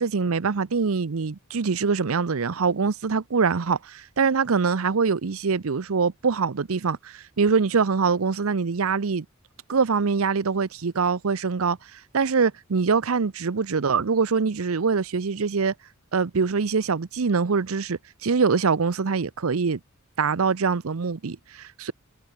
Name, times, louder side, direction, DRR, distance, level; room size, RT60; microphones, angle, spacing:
voice 1, 0.0-9.2 9.7-11.8 12.1-15.7 16.1-19.8 20.2-21.9, right 5 dB, 85° right, 0.7 m, -24 dB
head